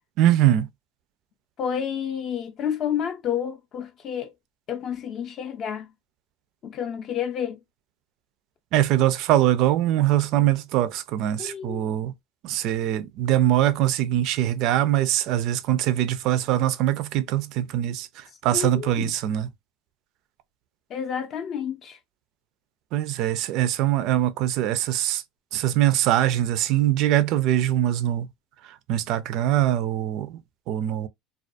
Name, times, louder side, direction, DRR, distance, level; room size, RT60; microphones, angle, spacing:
voice 1, 0.2-0.7 8.7-12.1 12.4-18.1 18.4-19.5 22.9-25.2 25.5-28.3 28.9-30.4 30.7-31.1, right 12 dB, 55° right, 0.3 m, -22 dB
voice 2, 1.6-4.3 4.7-5.9 6.6-7.6 11.4-11.9 18.5-19.1 20.9-22.0, left 8 dB, 40° left, 0.4 m, -30 dB
2.3 x 2.3 x 2.4 m
supercardioid pair, 140°, 0 cm